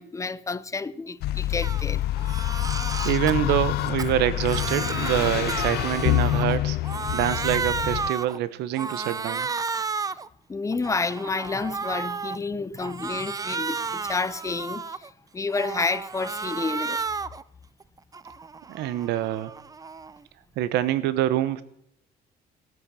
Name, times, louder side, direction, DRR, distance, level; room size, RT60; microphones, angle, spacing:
voice 1, 0.0-2.0 10.5-17.0, left 4 dB, 20° left, 0.7 m, -30 dB
sound 1, 1.2-8.1, left 15 dB, 70° left, 0.5 m, -26 dB
Crying sobbing, 1.6-1.8 2.2-3.3 3.8-6.6 6.8-8.4 8.8-10.3 10.7-12.4 12.8-15.1 15.5-17.4 17.8-20.2, right 5 dB, 20° right, 0.6 m, -32 dB
voice 2, 3.0-6.8 7.1-9.5 18.7-19.5 20.6-21.6, right 13 dB, 85° right, 0.9 m, -25 dB
18.5 x 8.6 x 7.5 m
cardioid pair, 110°, 17 cm